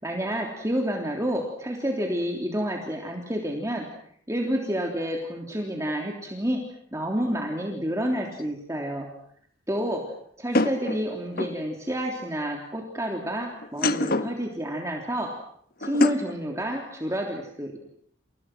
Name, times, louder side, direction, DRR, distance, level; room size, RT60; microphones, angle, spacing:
voice 1, 0.0-3.9 4.3-6.6 6.9-9.1 9.7-10.0 10.4-15.3 15.8-17.8, equal, 15° right, 1 dB, 3.4 m, -29 dB
sound 1, 8.4-8.5 10.5-11.6 13.6-14.4 15.8-16.4, left 2 dB, 50° left, 1.4 m, -25 dB
30.0 x 29.0 x 6.2 m, 0.65 s
head